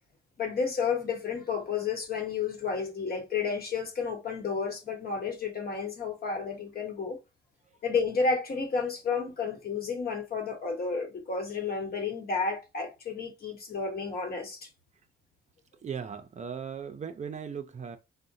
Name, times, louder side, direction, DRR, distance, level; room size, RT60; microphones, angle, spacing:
voice 1, 0.4-7.2 7.8-14.7, left 5 dB, 50° left, 1.1 m, -31 dB
voice 2, 15.8-18.0, right 7 dB, 35° right, 0.5 m, -37 dB
3.6 x 2.1 x 2.6 m
cardioid pair, 90°, 20 cm